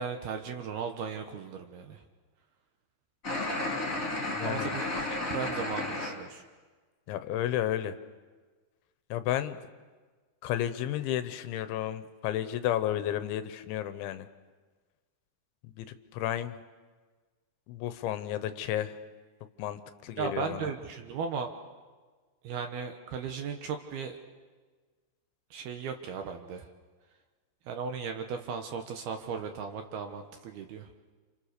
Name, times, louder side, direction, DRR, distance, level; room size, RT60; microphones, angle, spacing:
voice 1, 0.0-2.0 4.4-4.9 5.3-6.4 20.2-21.5 22.4-24.2 25.5-26.7 27.7-30.9, right 6 dB, 70° right, 5 dB, 2.6 m, -36 dB
sound 1, 3.2-6.1, left 2 dB, 20° left, 3.3 m, -32 dB
voice 2, 4.3-4.7 7.1-8.0 9.1-9.6 10.4-14.3 15.6-15.9 16.1-16.6 17.7-19.0 19.6-20.7, left 12 dB, 75° left, 11 dB, 3.2 m, -32 dB
29.5 x 28.5 x 6.6 m, 1.4 s
omnidirectional pair, 5.6 m